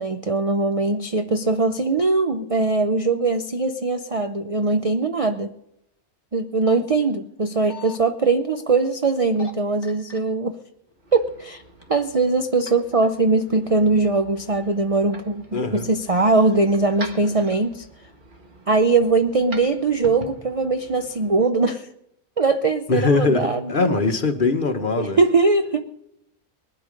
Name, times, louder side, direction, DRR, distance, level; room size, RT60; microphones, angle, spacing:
voice 1, 0.0-5.5 6.3-10.6 11.1-11.6 11.9-17.9 18.7-21.9 22.4-23.9 25.0-25.8, right 3 dB, 55° right, 0.3 m, -21 dB
sound 1, 6.4-6.8 7.4-8.0 9.2-9.5 9.8-10.2 10.9-11.4 11.8-11.9, left 4 dB, 15° left, 1.9 m, -39 dB
sound 2, 10.9-21.5, right 2 dB, 35° right, 1.4 m, -44 dB
voice 2, 15.5-15.9 22.9-25.2, left 4 dB, 40° left, 1.1 m, -21 dB
20.0 x 12.0 x 5.2 m
omnidirectional pair, 1.5 m